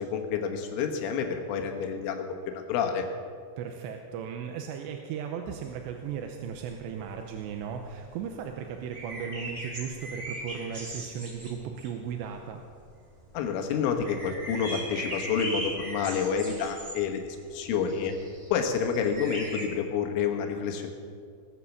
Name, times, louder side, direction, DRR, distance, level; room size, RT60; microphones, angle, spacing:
voice 1, 0.0-3.1 13.3-18.1 18.5-20.9, left 6 dB, 90° left, 4 dB, 3.9 m, -29 dB
voice 2, 3.6-12.6, right 7 dB, 80° right, 4 dB, 2.8 m, -36 dB
sound 1, 5.6-12.9 13.2-13.5 13.7-19.6, right 1 dB, 50° right, 0.6 m, -39 dB
19.5 x 8.7 x 7.2 m, 2.2 s
omnidirectional pair, 5.4 m